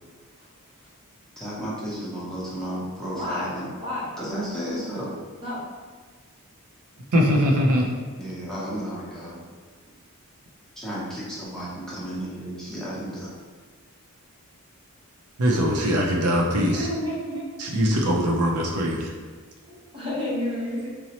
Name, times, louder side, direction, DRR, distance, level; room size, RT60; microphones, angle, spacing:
voice 1, 1.4-3.7 4.2-5.1 8.2-9.4 10.8-13.3, equal, ahead, -8 dB, 0.7 m, -33 dB
voice 2, 3.1-3.5 3.8-4.1 5.4-5.6 16.6-17.4 19.7-20.9, left 1 dB, 25° right, -7 dB, 0.9 m, -30 dB
voice 3, 7.1-7.9 15.4-16.9 17.6-19.1, equal, 85° right, -1 dB, 0.5 m, -21 dB
4.1 x 2.0 x 2.8 m, 1.5 s
head